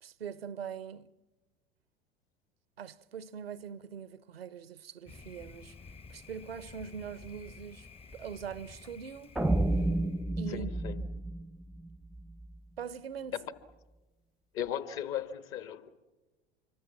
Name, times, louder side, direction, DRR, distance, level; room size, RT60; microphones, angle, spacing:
voice 1, 0.0-1.1 2.8-5.7 6.1-7.9 8.1-9.3 10.4-10.7 12.8-13.3, right 7 dB, 85° right, 0.8 m, -42 dB
Thunder, 5.1-10.3, left 4 dB, 20° left, 0.9 m, -52 dB
sound 1, 9.4-12.5, right 2 dB, ahead, 0.7 m, -31 dB
voice 2, 10.5-11.0 13.3-13.5 14.5-15.9, left 10 dB, 45° left, 1.8 m, -37 dB
26.5 x 24.0 x 7.3 m
hypercardioid pair, 80°, 29 cm